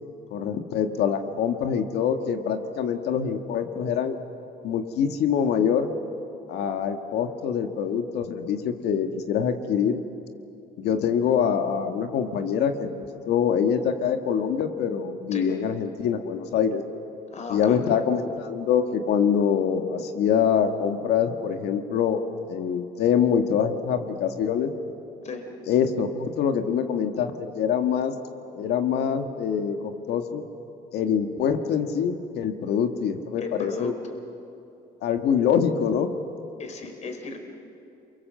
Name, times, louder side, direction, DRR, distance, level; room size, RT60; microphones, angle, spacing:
voice 1, 0.3-4.2 4.6-6.0 6.5-10.0 10.8-16.8 17.5-22.2 22.5-24.7 25.7-28.2 28.5-30.4 30.9-33.9 35.0-36.1, left 7 dB, 75° left, 6 dB, 1.9 m, -25 dB
voice 2, 15.3-15.6 17.3-17.8 25.2-25.5 33.4-33.9 36.6-37.4, left 4 dB, 40° left, 4 dB, 4.2 m, -35 dB
29.5 x 23.5 x 7.8 m, 2.7 s
cardioid pair, 110°, 17 cm